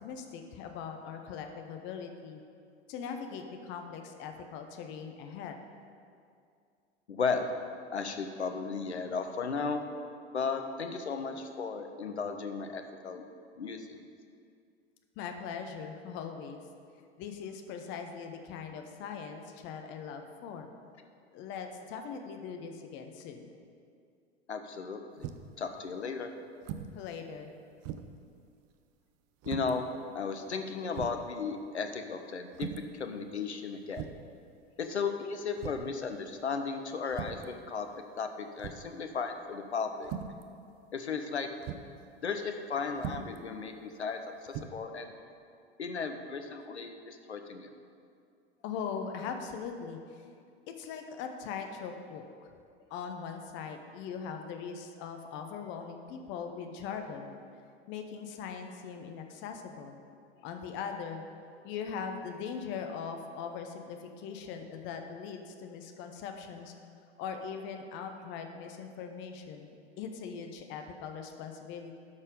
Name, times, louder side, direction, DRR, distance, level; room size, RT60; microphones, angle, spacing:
voice 1, 0.0-2.4 2.9-5.6 15.2-16.6 17.2-20.7 21.3-23.5 26.9-27.5 48.6-50.3 50.8-52.5 52.9-57.4 57.9-60.0 60.4-61.2 61.6-66.7 67.2-72.0, left 6 dB, 35° left, 5 dB, 0.8 m, -40 dB
voice 2, 7.1-7.5 7.9-9.8 10.3-13.2 13.6-14.0 24.5-25.3 25.6-26.3 29.5-29.9 30.1-32.7 33.0-34.0 34.8-40.1 40.9-41.5 42.2-45.1 45.8-47.7, left 5 dB, 80° left, 6 dB, 0.8 m, -35 dB
sound 1, 25.2-25.6 26.6-27.0 27.4-27.5 27.8-28.2 29.4-29.8 30.5-30.6 30.9-31.3 32.5-32.9 33.9-34.3 35.6-35.9 37.1-37.5 38.6-39.0 40.0-40.4 41.6-41.9 43.0-43.4 44.5-44.7, right 9 dB, 30° right, 0.5 m, -40 dB
12.5 x 4.3 x 5.2 m, 2.3 s
figure-of-eight pair, 85°, 33 cm